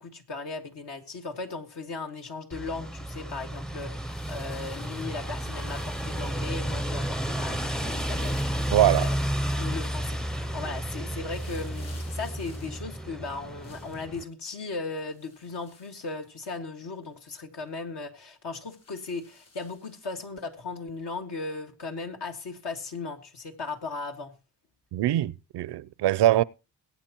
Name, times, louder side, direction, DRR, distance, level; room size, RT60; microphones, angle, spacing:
voice 1, 0.0-8.3 9.0-9.2 9.5-24.3, left 3 dB, 75° left, 1.9 m, -37 dB
sound 1, 2.5-14.2, equal, ahead, 0.5 m, -32 dB
sound 2, 4.0-6.7 7.7-9.8 11.2-14.1 15.0-16.6 17.0-17.1 17.6-17.7 18.6-20.2 21.1-21.2, left 4 dB, 55° left, 7.3 m, -54 dB
voice 2, 8.7-9.1 24.9-26.4, right 13 dB, 75° right, 0.5 m, -22 dB
22.0 x 8.6 x 2.9 m
cardioid pair, 60°, 42 cm